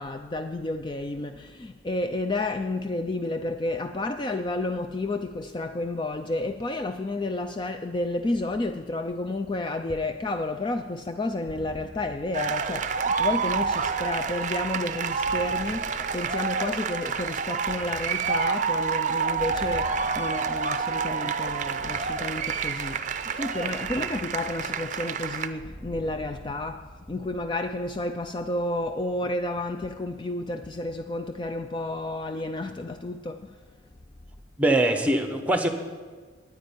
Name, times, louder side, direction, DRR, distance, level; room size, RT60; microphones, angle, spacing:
voice 1, 0.0-33.5, left 2 dB, 25° left, 7 dB, 0.4 m, -31 dB
sound 1, 11.4-29.1, equal, 40° left, 1.8 m, -47 dB
sound 2, 12.3-25.5, right 5 dB, 40° right, 0.6 m, -28 dB
voice 2, 34.6-35.7, right 1 dB, 10° right, 6 dB, 1.1 m, -22 dB
9.7 x 9.2 x 9.6 m, 1.5 s
head